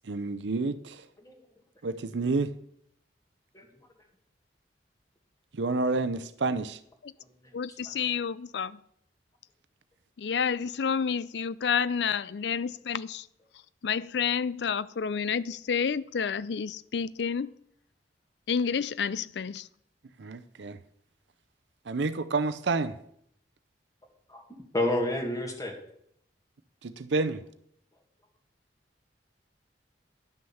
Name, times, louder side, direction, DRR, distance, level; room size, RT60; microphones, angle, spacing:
voice 1, 0.0-1.0 1.8-2.5 5.5-6.8 20.2-20.8 21.9-22.9 26.8-27.4, right 3 dB, 75° right, 0.6 m, -29 dB
voice 2, 7.5-8.8 10.2-13.3 13.8-17.5 18.5-19.7, left 6 dB, 70° left, 0.4 m, -29 dB
voice 3, 24.7-25.7, left 1 dB, 20° left, 2.0 m, -29 dB
11.5 x 6.4 x 7.0 m
head